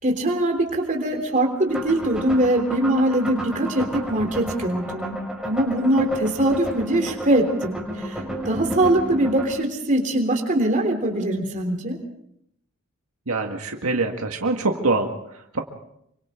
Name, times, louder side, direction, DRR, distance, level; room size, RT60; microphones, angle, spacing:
voice 1, 0.0-8.2 8.5-12.0, right 1 dB, 35° right, 3 dB, 3.5 m, -22 dB
sound 1, 1.7-9.5, right 1 dB, 5° right, 6.0 m, -32 dB
voice 2, 13.3-15.6, right 3 dB, 80° right, 2 dB, 1.9 m, -24 dB
27.5 x 25.0 x 3.8 m, 0.75 s
head